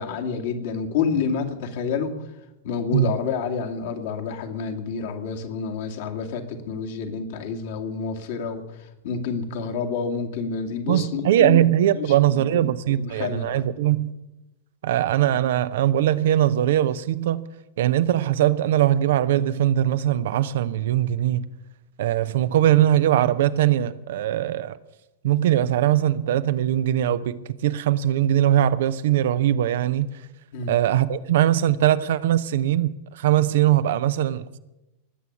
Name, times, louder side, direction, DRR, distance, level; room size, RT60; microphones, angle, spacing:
voice 1, 0.0-2.1 2.6-11.7 12.0-13.6 30.5-30.7, left 5 dB, 55° left, 2.2 m, -29 dB
voice 2, 10.9-14.1 14.8-17.4 17.8-21.4 22.0-24.8 25.2-30.1 30.7-34.6, right 12 dB, 55° right, 0.7 m, -21 dB
20.0 x 8.3 x 7.1 m
figure-of-eight pair, 90°, 0 cm